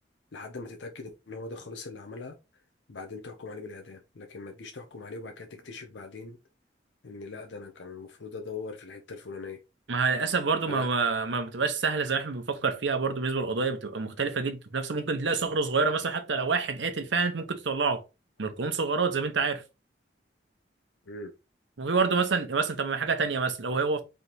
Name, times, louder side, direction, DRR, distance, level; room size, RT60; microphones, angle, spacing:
voice 1, 0.3-2.4 2.9-6.4 7.0-9.6 10.7-10.9 21.1-21.3, left 3 dB, 75° left, 0.7 m, -41 dB
voice 2, 9.9-18.0 18.4-19.6 21.8-24.0, right 4 dB, 80° right, 0.8 m, -27 dB
3.4 x 3.0 x 4.1 m
head